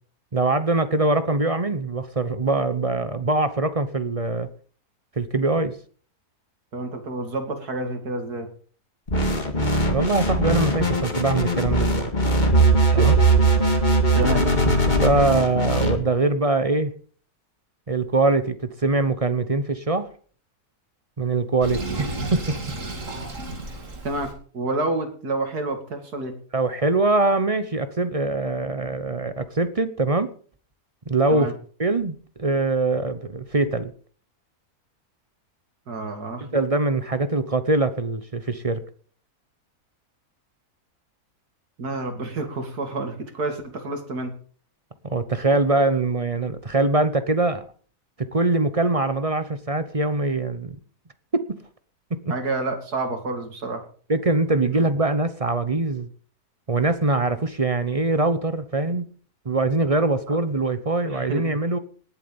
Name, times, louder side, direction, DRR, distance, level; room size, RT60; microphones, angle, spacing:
voice 1, 0.3-4.5 5.2-5.7 9.8-12.1 12.9-13.1 15.0-16.9 17.9-20.1 21.2-22.6 26.5-30.3 31.1-31.5 31.8-33.9 36.4-38.8 45.0-47.7 48.2-50.8 51.3-51.6 52.2-52.3 54.1-56.1 56.7-59.1 59.4-61.8, right 2 dB, 30° right, 12 dB, 0.8 m, -23 dB
voice 2, 6.7-8.5 12.9-13.2 14.1-14.4 24.0-24.3 24.5-26.3 31.3-31.5 35.9-36.5 41.8-44.3 52.3-53.8 60.3-60.4 61.1-61.4, right 2 dB, 80° right, 5 dB, 3.0 m, -29 dB
sound 1, 9.1-16.0, right 2 dB, 30° left, 2.1 m, -20 dB
Sink (filling or washing), 21.6-24.3, right 2 dB, 55° right, 2.9 m, -32 dB
19.0 x 7.6 x 5.4 m, 0.44 s
omnidirectional pair, 1.6 m